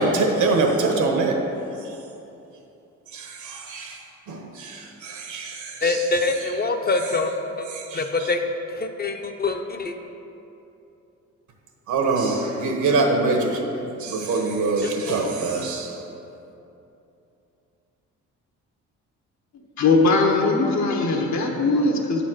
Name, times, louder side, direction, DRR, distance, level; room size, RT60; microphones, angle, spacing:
voice 1, 0.0-1.4 3.1-4.0 4.3-6.0 7.7-8.0 11.9-13.6 14.0-15.9, right 3 dB, 75° right, 2 dB, 1.2 m, -24 dB
voice 2, 5.8-7.7 7.9-8.4 8.7-9.9 14.8-15.2, left 3 dB, 30° left, 5 dB, 0.6 m, -25 dB
voice 3, 19.8-22.2, left 3 dB, 65° left, 1 dB, 1.2 m, -20 dB
8.5 x 4.2 x 6.2 m, 2.8 s
cardioid pair, 90°, 30 cm